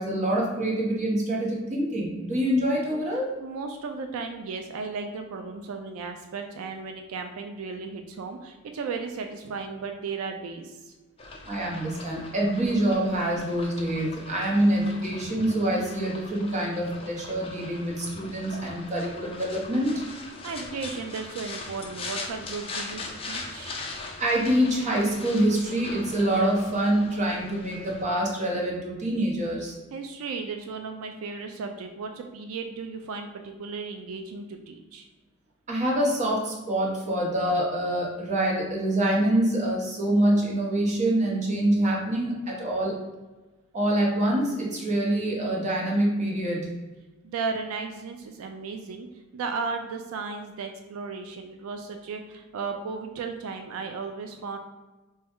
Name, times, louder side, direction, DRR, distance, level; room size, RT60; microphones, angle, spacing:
voice 1, 0.0-3.3 11.5-20.0 24.2-29.7 35.7-43.0 43.7-46.7, right 1 dB, 35° right, -2 dB, 0.9 m, -25 dB
voice 2, 3.4-10.9 20.4-23.8 29.9-35.1 47.2-49.1 49.3-54.6, right 4 dB, 85° right, 5 dB, 0.3 m, -35 dB
sound 1, 11.2-28.0, left 3 dB, 25° left, 0.5 m, -40 dB
3.3 x 2.3 x 4.3 m, 1.2 s
head